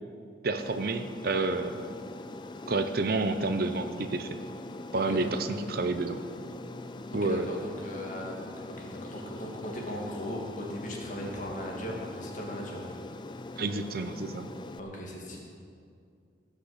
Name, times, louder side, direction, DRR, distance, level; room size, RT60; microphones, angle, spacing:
voice 1, 0.4-1.8 2.7-4.3 4.9-6.2 7.1-7.5 13.6-14.5, right 3 dB, 50° right, 9 dB, 0.7 m, -29 dB
Aircraft, 0.6-14.8, left 2 dB, 25° left, 0.4 m, -42 dB
voice 2, 4.9-5.3 7.1-12.9 14.8-15.4, equal, 40° left, -1 dB, 2.5 m, -38 dB
17.0 x 6.5 x 8.1 m, 2.3 s
head